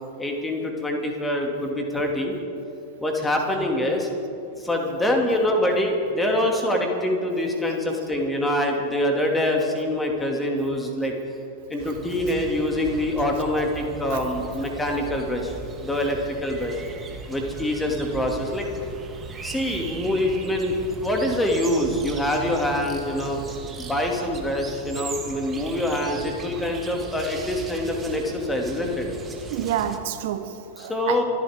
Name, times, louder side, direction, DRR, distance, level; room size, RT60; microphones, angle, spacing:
voice 1, 0.2-2.3 3.0-4.1 4.6-11.1 11.7-15.5 15.8-16.7 17.3-18.7 19.4-20.7 21.0-23.4 23.8-29.1 30.8-31.2, left 1 dB, 10° left, 2 dB, 2.3 m, -25 dB
sound 1, 11.8-30.0, right 4 dB, 20° right, 1.6 m, -38 dB
voice 2, 29.5-31.2, right 10 dB, 50° right, 9 dB, 1.2 m, -29 dB
27.5 x 12.0 x 3.6 m, 2.6 s
figure-of-eight pair, 90°, 0 cm